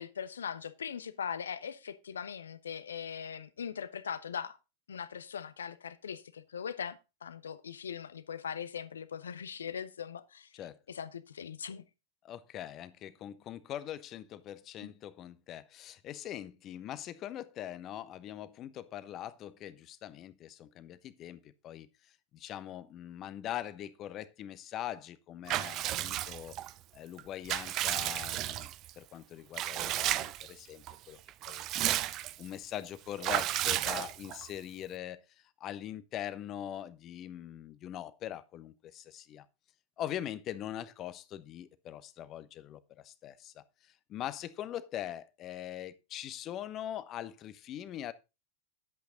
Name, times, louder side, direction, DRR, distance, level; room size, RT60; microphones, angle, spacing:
voice 1, 0.0-4.6 4.9-10.5 10.9-11.8 14.8-14.9, left 7 dB, 70° left, 1.0 m, -40 dB
voice 2, 12.2-21.9 22.3-26.5 26.9-31.2 31.5-32.0 32.4-35.2 35.6-39.5 40.0-48.1, left 11 dB, 35° left, 0.9 m, -42 dB
Water / Bathtub (filling or washing) / Liquid, 25.5-26.7 27.2-28.9 29.5-30.5 30.9-31.0 31.3-32.5 33.2-34.5, right 14 dB, 35° right, 0.6 m, -33 dB
11.0 x 8.2 x 3.8 m
figure-of-eight pair, 90°, 0 cm